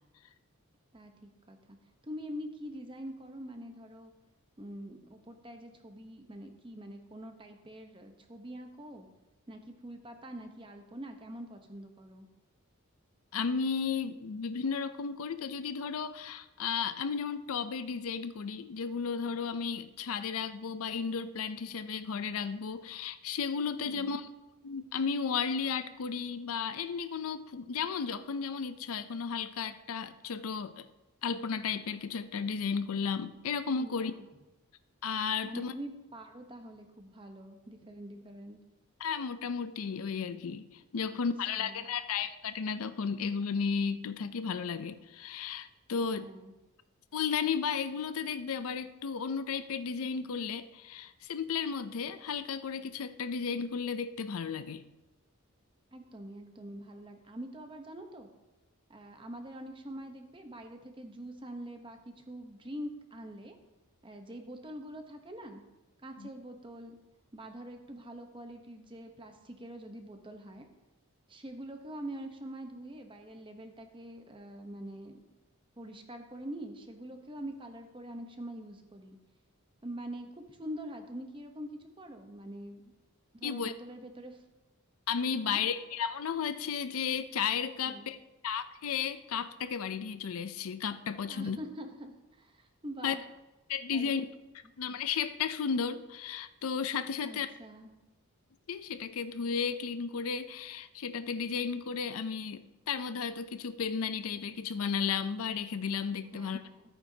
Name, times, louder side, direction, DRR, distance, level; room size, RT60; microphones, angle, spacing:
voice 1, 0.9-1.8 2.0-4.1 4.6-9.1 9.5-12.3 23.8-24.1 33.8-34.2 35.4-38.6 41.0-41.2 41.6-41.8 46.1-46.5 55.9-58.3 58.9-63.6 64.0-65.6 66.0-67.0 67.3-70.6 71.3-75.2 75.8-79.2 79.8-82.9 83.3-84.4 85.4-85.6 87.8-88.1 91.3-93.2 93.9-94.2 97.2-97.9 106.3-106.8, right 1 dB, 20° right, 5 dB, 0.8 m, -44 dB
voice 2, 13.3-24.3 24.6-30.9 31.2-34.1 35.0-35.7 39.0-46.3 47.1-54.8 66.2-66.3 83.4-83.7 85.1-88.2 88.4-91.6 93.0-93.1 93.7-94.3 94.8-97.5 98.7-106.6, left 6 dB, 75° left, 12 dB, 0.5 m, -34 dB
13.5 x 8.9 x 2.8 m, 1.0 s
head